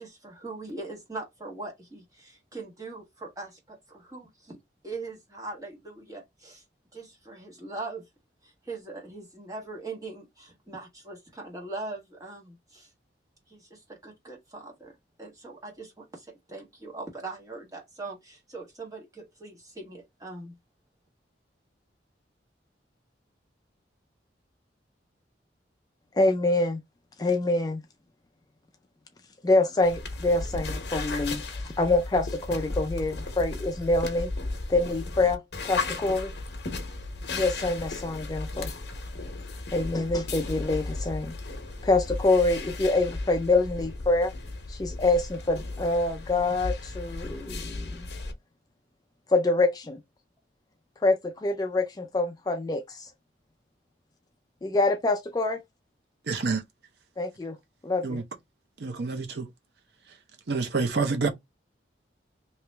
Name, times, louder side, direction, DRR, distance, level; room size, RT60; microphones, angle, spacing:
voice 1, 0.0-4.6 4.8-6.6 6.9-8.0 8.4-12.9 13.5-20.5, right 3 dB, 20° right, 1.4 m, -41 dB
voice 2, 26.1-26.8 27.2-27.8 29.4-34.3 34.7-36.3 37.3-38.7 39.7-41.3 41.8-44.3 44.7-48.1 49.3-50.0 51.0-53.1 54.6-55.6 57.2-57.6 57.8-58.2, left 2 dB, 20° left, 0.4 m, -26 dB
sound 1, 29.8-48.3, left 3 dB, 65° left, 0.9 m, -35 dB
voice 3, 56.3-56.6 58.0-58.2 58.8-59.5 60.5-61.3, right 4 dB, 60° right, 0.6 m, -27 dB
3.1 x 2.8 x 3.3 m
head